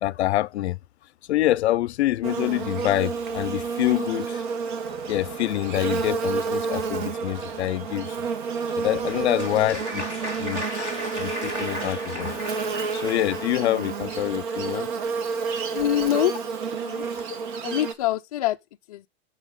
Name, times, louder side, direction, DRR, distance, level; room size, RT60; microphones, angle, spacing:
voice 1, 0.0-0.8 1.3-4.4 5.1-8.2 8.8-10.1 10.4-14.9, left 14 dB, 75° left, 0.6 m, -26 dB
Buzz, 2.2-17.9, right 5 dB, 45° right, 1.2 m, -30 dB
sound 1, 4.8-12.8, right 5 dB, 75° right, 2.5 m, -51 dB
Applause, 8.7-13.5, equal, 20° right, 2.3 m, -35 dB
voice 2, 15.7-16.4 16.7-17.1 17.6-18.6 18.9-19.1, left 13 dB, 35° left, 0.4 m, -25 dB
11.5 x 6.3 x 3.7 m
supercardioid pair, 180°, 34 cm